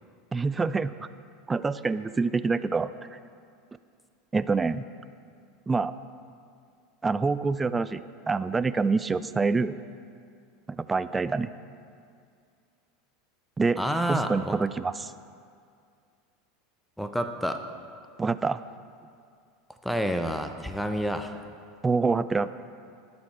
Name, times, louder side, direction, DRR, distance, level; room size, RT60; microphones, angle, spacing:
voice 1, 0.3-1.1 1.5-2.9 4.3-4.8 5.7-5.9 7.0-9.8 10.7-11.5 13.6-13.8 14.1-15.1 18.2-18.6 21.8-22.5, right 4 dB, 15° right, 14 dB, 0.4 m, -26 dB
voice 2, 13.8-14.6 17.0-17.6 19.8-21.4, equal, ahead, 7 dB, 0.8 m, -29 dB
19.5 x 7.1 x 4.3 m, 2.3 s
figure-of-eight pair, 80°, 0 cm